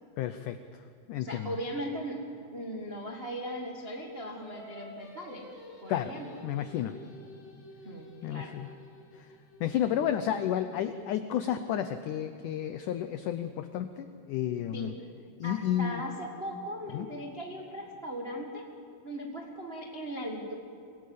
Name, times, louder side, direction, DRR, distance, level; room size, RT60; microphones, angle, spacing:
voice 1, 0.2-0.6 1.1-1.5 5.9-6.1 6.4-6.9 8.2-8.7 9.1-9.3 9.6-14.9 15.4-16.0 16.9-17.1, left 10 dB, 85° left, 10 dB, 1.8 m, -31 dB
voice 2, 1.2-2.2 2.5-5.5 5.8-6.2 7.8-8.6 14.7-14.9 15.4-18.6 19.0-20.5, equal, 75° right, 0 dB, 0.5 m, -38 dB
Singing, 4.4-9.8, equal, 50° left, 0.8 m, -50 dB
24.5 x 17.5 x 8.5 m, 2.6 s
omnidirectional pair, 4.6 m